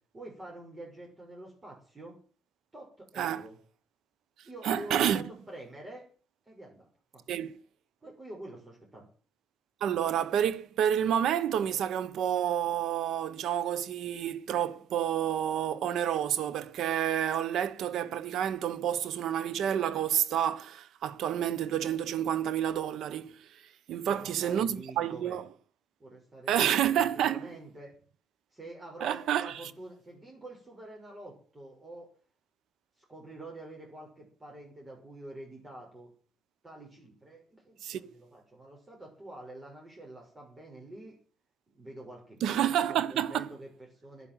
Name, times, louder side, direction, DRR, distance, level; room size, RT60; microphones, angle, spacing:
voice 1, 0.1-2.2 2.7-3.6 4.4-6.0 6.5-7.2 8.0-9.1 24.0-25.4 26.0-27.9 28.5-32.1 33.0-36.1 36.6-41.2 41.7-44.3, right 1 dB, 25° right, 6.3 m, -47 dB
voice 2, 4.6-5.2 7.3-7.6 9.8-23.6 23.9-25.5 26.5-27.5 29.0-29.7 37.8-38.0 42.4-43.5, right 10 dB, 80° right, 1.2 m, -29 dB
11.5 x 10.5 x 9.1 m
cardioid pair, 90°, 0 cm